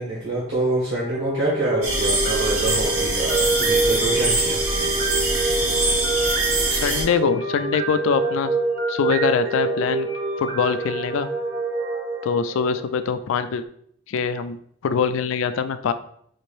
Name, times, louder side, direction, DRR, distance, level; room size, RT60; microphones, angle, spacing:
voice 1, 0.0-4.6 5.1-5.4, right 2 dB, 60° right, -6 dB, 1.2 m, -26 dB
sound 1, 1.0-13.1, right 3 dB, 35° right, 0.6 m, -26 dB
sound 2, 1.8-7.0, right 2 dB, 80° right, 0.8 m, -23 dB
voice 2, 6.7-8.5 8.9-10.1 10.4-11.3 12.2-13.6 14.1-14.6 14.8-15.9, left 6 dB, 65° left, 11 dB, 0.3 m, -23 dB
4.1 x 2.6 x 3.2 m, 0.66 s
head